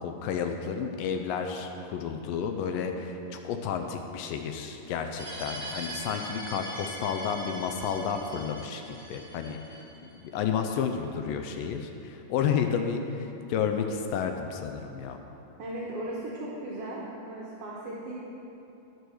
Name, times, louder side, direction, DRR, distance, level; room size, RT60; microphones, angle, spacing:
voice 1, 0.0-9.8 10.2-15.2, left 7 dB, 80° left, 5 dB, 2.2 m, -31 dB
sound 1, 5.2-10.1, right 1 dB, 35° right, 0.5 m, -41 dB
voice 2, 15.6-18.1, right 1 dB, 60° right, -5 dB, 1.6 m, -37 dB
12.0 x 6.3 x 6.3 m, 2.8 s
omnidirectional pair, 4.2 m